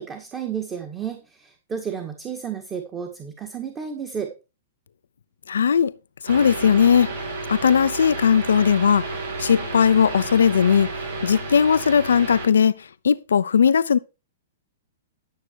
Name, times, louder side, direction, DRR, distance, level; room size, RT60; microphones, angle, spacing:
voice 1, 0.0-4.3, right 7 dB, 20° right, 1.9 m, -32 dB
voice 2, 5.5-5.9 6.2-7.1 7.5-9.1 9.4-10.9 11.2-14.0, left 7 dB, 80° left, 0.7 m, -18 dB
sound 1, 6.3-12.5, right 3 dB, 70° right, 6.2 m, -31 dB
12.0 x 6.7 x 4.7 m
hypercardioid pair, 120°, 0 cm